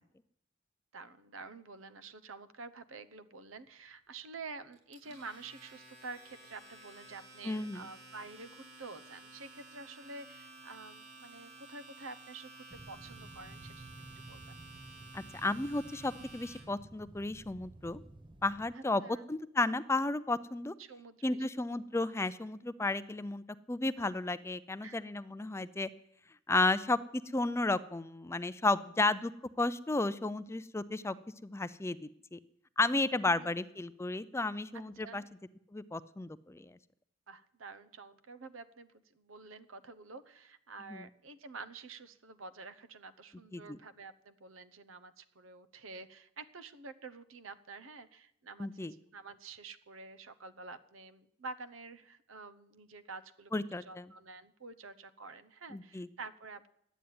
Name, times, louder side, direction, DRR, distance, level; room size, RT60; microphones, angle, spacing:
voice 1, 0.9-14.6 18.7-19.3 20.8-21.5 24.8-25.0 25.4-25.5 33.3-33.5 34.7-35.3 37.3-53.5 53.9-56.7, right 3 dB, 85° right, 14 dB, 0.9 m, -49 dB
Domestic sounds home sounds, 4.7-16.6, right 2 dB, 55° right, 6.8 m, -53 dB
voice 2, 7.4-7.8 15.1-18.0 18.4-19.0 19.3-20.7 21.2-25.9 26.5-29.3 29.6-31.2 31.4-32.4 32.8-35.2 35.7-36.8 40.9-41.0 43.5-43.8 48.6-48.9 53.5-54.1 55.7-56.1, left 2 dB, 15° left, 15 dB, 0.4 m, -33 dB
sound 1, 12.7-18.7, right 1 dB, 25° right, 0.7 m, -53 dB
12.0 x 9.2 x 9.4 m, 0.74 s
head